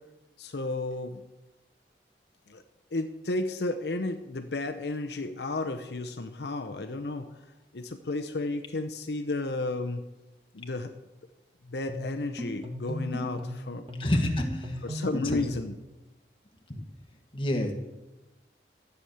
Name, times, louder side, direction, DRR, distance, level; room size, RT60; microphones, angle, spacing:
voice 1, 0.4-1.2 2.5-2.6 2.9-7.3 7.7-10.0 10.5-10.9 11.7-13.9 14.8-15.7, left 2 dB, 70° left, 7 dB, 0.7 m, -32 dB
sound 1, 11.9-15.7, equal, 30° right, 1.5 m, -37 dB
voice 2, 14.0-14.7 15.2-15.4 16.7-16.8 17.3-17.7, left 1 dB, 30° left, 3 dB, 1.6 m, -27 dB
13.0 x 7.1 x 7.9 m, 1.1 s
head